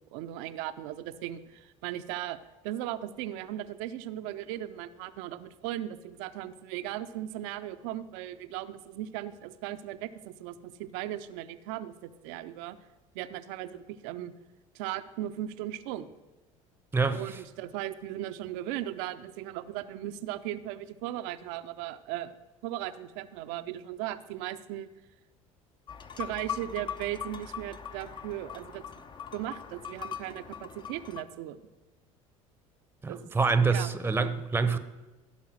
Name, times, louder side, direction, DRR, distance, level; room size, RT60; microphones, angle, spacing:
voice 1, 0.1-2.4 2.6-12.8 13.1-14.3 14.7-16.1 17.1-22.3 22.6-24.9 26.2-29.0 29.3-31.6 33.1-33.3 33.7-33.9, right 13 dB, 60° right, 12 dB, 0.6 m, -37 dB
sound 1, 25.9-31.2, left 8 dB, 25° left, 0.8 m, -41 dB
voice 2, 33.0-34.8, right 4 dB, 10° right, 11 dB, 0.8 m, -26 dB
16.0 x 5.5 x 6.1 m, 1.1 s
figure-of-eight pair, 65°, 17 cm